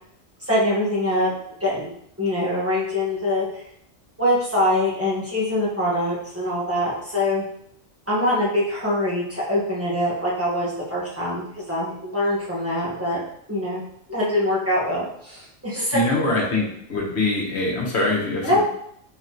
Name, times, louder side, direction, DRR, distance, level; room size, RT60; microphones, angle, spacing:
voice 1, 0.4-1.3 1.6-1.9 2.2-3.6 4.2-7.4 8.1-13.2 13.5-13.8 14.1-16.0 18.4-18.6, left 1 dB, 10° right, -8 dB, 1.4 m, -23 dB
voice 2, 15.9-18.6, left 2 dB, 65° left, -2 dB, 1.4 m, -23 dB
4.1 x 3.9 x 3.0 m, 0.69 s
omnidirectional pair, 1.2 m